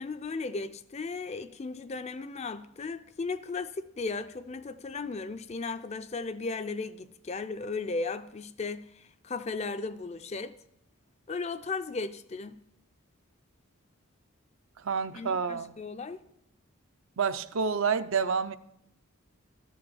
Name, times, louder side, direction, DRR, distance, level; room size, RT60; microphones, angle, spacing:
voice 1, 0.0-10.5 11.3-12.6 15.1-16.2, left 3 dB, 30° left, 0.4 m, -36 dB
voice 2, 14.8-15.7 17.2-18.6, right 5 dB, 70° right, 0.5 m, -28 dB
13.5 x 5.2 x 7.1 m
head